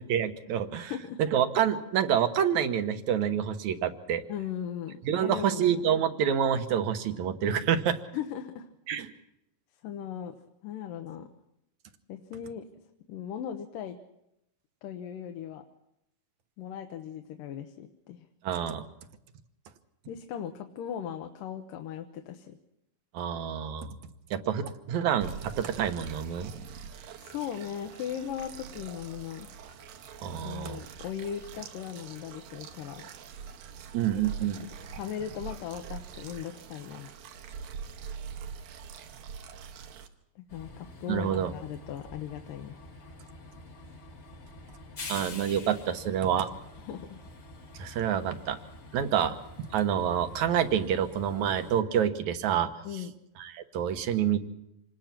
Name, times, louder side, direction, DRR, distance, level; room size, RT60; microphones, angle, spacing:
voice 1, 0.1-0.9 1.3-4.2 5.1-8.0 8.9-9.1 18.4-18.9 23.1-24.0 24.3-26.5 30.2-30.8 33.9-34.7 41.1-41.5 45.1-46.5 47.8-48.6 48.9-52.7 53.4-54.4, right 9 dB, 65° right, 9 dB, 2.3 m, -27 dB
voice 2, 0.8-1.2 4.3-6.1 8.1-8.7 9.8-10.4 10.6-11.3 12.1-12.7 13.1-14.0 14.8-15.6 16.6-18.3 20.1-22.6 27.2-29.5 30.4-33.1 34.4-37.1 40.4-42.8 46.8-47.2 52.8-53.1, left 9 dB, 80° left, 5 dB, 2.7 m, -38 dB
sound 1, 25.2-40.1, right 6 dB, 85° right, 3.0 m, -44 dB
Train, 40.5-51.8, left 2 dB, 45° left, 0.8 m, -47 dB
26.5 x 20.0 x 5.9 m, 0.85 s
omnidirectional pair, 3.9 m